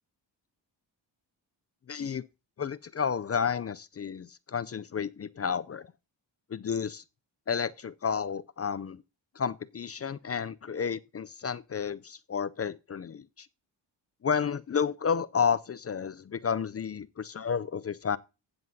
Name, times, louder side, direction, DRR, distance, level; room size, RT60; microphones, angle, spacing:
voice 1, 1.9-2.2 2.6-5.9 6.5-7.0 7.5-9.0 9.4-13.5 14.2-18.2, left 6 dB, 35° left, 0.4 m, -31 dB
15.5 x 7.7 x 2.7 m
cardioid pair, 70°, 46 cm